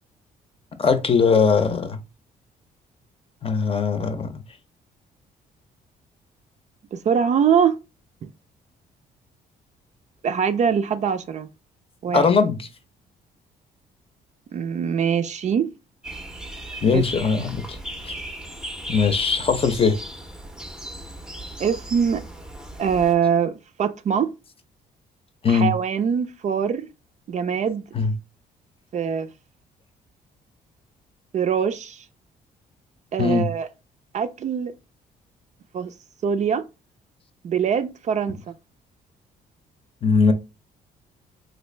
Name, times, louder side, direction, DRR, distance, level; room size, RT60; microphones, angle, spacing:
voice 1, 0.8-2.0 3.4-4.3 12.1-12.7 16.8-17.8 18.1-18.2 18.9-20.0 25.4-25.7 27.9-28.1 33.2-33.5 40.0-40.3, left 5 dB, 35° left, 0.7 m, -20 dB
voice 2, 6.9-7.8 10.2-11.5 12.0-12.2 14.5-15.7 16.9-17.0 21.6-22.2 22.8-23.5 23.8-24.3 25.5-26.9 27.3-27.8 28.9-29.3 31.3-32.0 33.1-33.7 34.1-34.7 35.7-35.9 36.2-36.6 37.4-38.4, right 7 dB, 45° right, 0.4 m, -23 dB
sound 1, 16.0-23.1, right 1 dB, 5° right, 0.6 m, -37 dB
3.1 x 2.6 x 3.1 m
cardioid pair, 90°, 16 cm